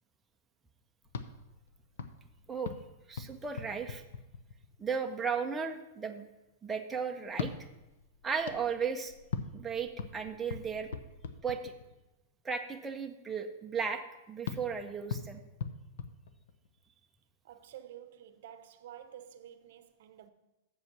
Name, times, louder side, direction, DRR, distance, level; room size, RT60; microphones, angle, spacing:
sound 1, 1.0-4.9 7.2-12.1 14.4-16.9, left 6 dB, 80° left, 0.7 m, -42 dB
voice 1, 3.1-4.0 4.8-6.3 6.6-7.5 8.2-9.1 9.5-10.9 11.4-11.7 12.4-14.0 14.3-15.4, right 6 dB, 5° right, 0.5 m, -35 dB
voice 2, 17.4-20.3, right 10 dB, 55° right, 0.7 m, -50 dB
8.0 x 7.1 x 5.9 m
supercardioid pair, 175°, 0 cm